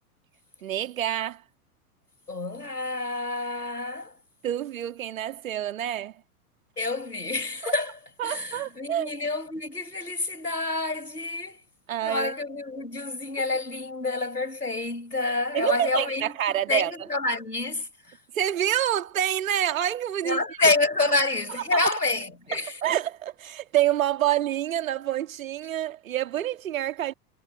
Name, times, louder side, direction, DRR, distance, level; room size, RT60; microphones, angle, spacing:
voice 1, 0.6-1.4 4.4-6.2 7.6-7.7 8.2-9.1 11.9-12.3 15.5-16.9 18.3-20.4 21.7-21.9 22.8-27.1, right 11 dB, 60° right, 2.1 m, -27 dB
voice 2, 2.3-4.1 6.8-11.6 12.0-16.3 16.7-18.2 20.2-22.8, left 3 dB, 85° left, 7.1 m, -28 dB
figure-of-eight pair, 95°, 46 cm